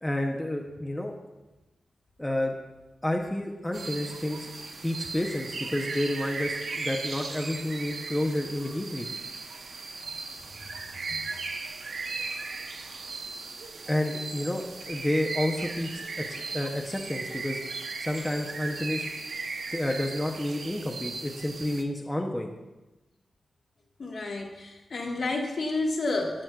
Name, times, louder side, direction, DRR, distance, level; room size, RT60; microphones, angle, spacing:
voice 1, 0.0-1.1 2.2-2.5 3.0-4.5 4.8-9.1 13.9-17.6 18.0-19.1 19.7-22.5, left 1 dB, 10° left, 1 dB, 0.6 m, -30 dB
sound 1, 3.7-21.8, right 4 dB, 70° right, 0.6 m, -37 dB
voice 2, 24.0-26.4, left 2 dB, 55° left, 1 dB, 1.1 m, -30 dB
15.0 x 6.0 x 2.3 m, 1.1 s
wide cardioid pair, 150°, 0 cm